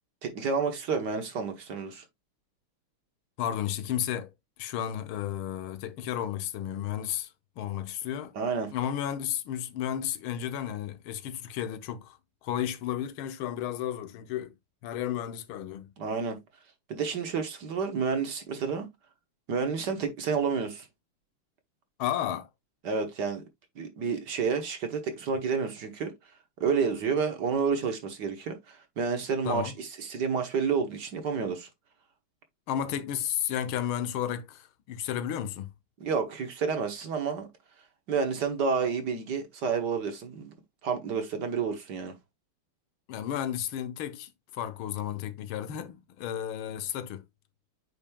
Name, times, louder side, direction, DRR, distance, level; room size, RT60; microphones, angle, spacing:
voice 1, 0.2-2.0 8.3-8.7 16.0-16.4 16.9-18.9 19.5-20.9 22.8-23.4 23.8-26.1 26.6-31.7 36.0-37.5 38.1-40.5 40.8-42.1, right 5 dB, 55° right, 1.6 m, -30 dB
voice 2, 3.4-4.3 4.6-8.3 8.7-14.5 14.8-15.9 22.0-22.5 29.4-29.7 32.7-35.7 43.1-47.2, left 10 dB, 75° left, 1.7 m, -33 dB
8.9 x 5.1 x 2.2 m
omnidirectional pair, 2.4 m